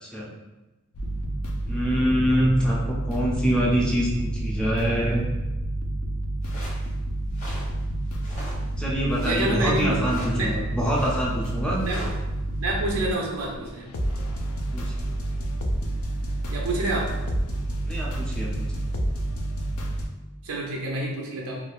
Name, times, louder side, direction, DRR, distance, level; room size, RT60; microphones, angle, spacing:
sound 1, 0.9-20.1, right 1 dB, 80° left, 0.4 m, -29 dB
voice 1, 1.6-5.2 8.8-11.8 14.7-14.9 17.9-18.7, equal, 5° left, -5 dB, 0.4 m, -25 dB
sound 2, 6.4-6.9 7.3-7.7 8.1-8.7 8.9-9.5 10.0-10.4 10.9-12.2, equal, 35° left, 1.0 m, -40 dB
voice 2, 9.2-9.8 10.3-10.6 11.8-12.0 12.6-13.9 16.5-17.1 20.4-21.6, right 1 dB, 85° right, -2 dB, 0.6 m, -28 dB
3.2 x 2.3 x 2.4 m, 1.1 s
head